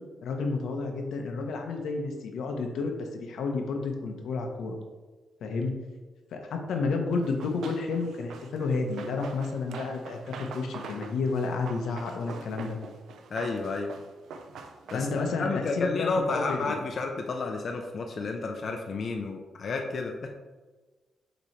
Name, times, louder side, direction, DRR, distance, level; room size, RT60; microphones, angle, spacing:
voice 1, 0.2-4.8 5.4-5.7 6.3-12.8 14.9-16.8, left 4 dB, 85° left, 3 dB, 0.9 m, -31 dB
Run, 7.2-15.4, right 5 dB, 85° right, 0.5 m, -44 dB
voice 2, 13.3-13.9 14.9-20.5, left 3 dB, 45° left, 3 dB, 0.5 m, -31 dB
6.8 x 3.0 x 4.5 m, 1.3 s
cardioid pair, 140°, 0 cm